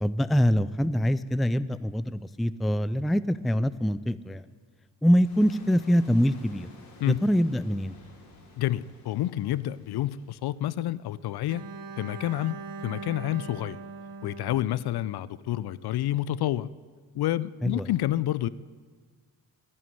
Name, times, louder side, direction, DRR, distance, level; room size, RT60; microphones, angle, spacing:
voice 1, 0.0-4.4 5.0-6.7 7.1-7.9 17.6-17.9, equal, ahead, 15 dB, 0.4 m, -24 dB
sound 1, 5.2-11.2, left 2 dB, 85° left, 3.2 m, -53 dB
voice 2, 8.6-11.6 12.0-13.8 14.2-16.7 17.1-18.5, left 13 dB, 60° left, 19 dB, 0.6 m, -29 dB
Bowed string instrument, 11.5-15.5, right 4 dB, 50° right, 1.0 m, -41 dB
11.0 x 11.0 x 9.3 m, 1.5 s
hypercardioid pair, 45°, 44 cm